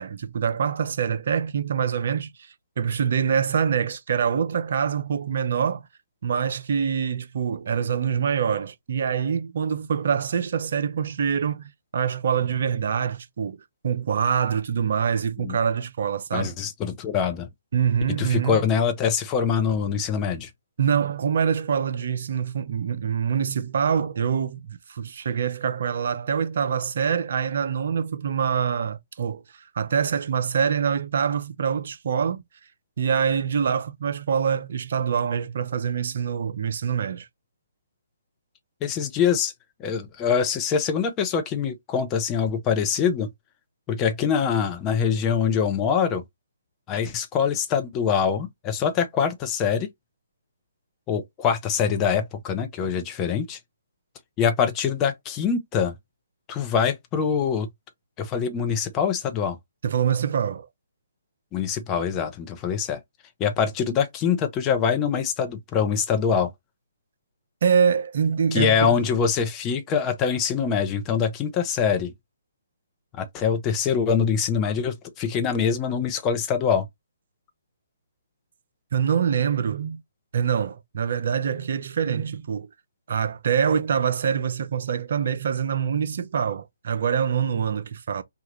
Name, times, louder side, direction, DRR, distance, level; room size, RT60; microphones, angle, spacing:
voice 1, 0.0-2.3 2.8-5.8 6.2-13.6 13.8-16.5 17.7-18.6 20.8-29.4 29.7-32.4 33.0-37.3 59.8-60.7 67.6-68.9 78.9-80.0 80.3-82.7 83.1-88.2, right 7 dB, 50° right, 0.5 m, -25 dB
voice 2, 16.3-17.5 18.2-20.5 38.8-39.5 39.8-43.3 43.9-46.2 46.9-49.9 51.1-53.6 54.4-55.9 56.5-57.7 58.2-59.6 61.5-63.0 63.4-66.5 68.5-72.1 73.1-76.9, left 7 dB, 20° left, 0.6 m, -24 dB
2.9 x 2.3 x 3.1 m
figure-of-eight pair, 140°, 0 cm